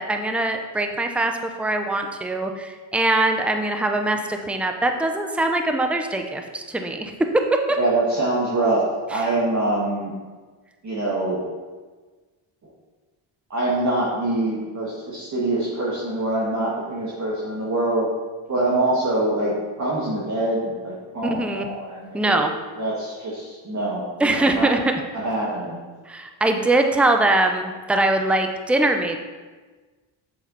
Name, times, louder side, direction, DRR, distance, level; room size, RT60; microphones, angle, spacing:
voice 1, 0.0-1.3 1.6-7.8 9.1-9.2 21.2-21.7 22.1-22.5 24.2-24.9 26.1-29.2, right 2 dB, 5° right, 4 dB, 0.7 m, -22 dB
voice 2, 7.8-8.8 9.1-10.1 10.8-11.4 13.5-18.1 18.5-22.4 22.8-24.7 25.1-25.8, right 2 dB, 35° right, -6 dB, 1.8 m, -24 dB
7.5 x 6.5 x 4.1 m, 1.3 s
cardioid pair, 75°, 48 cm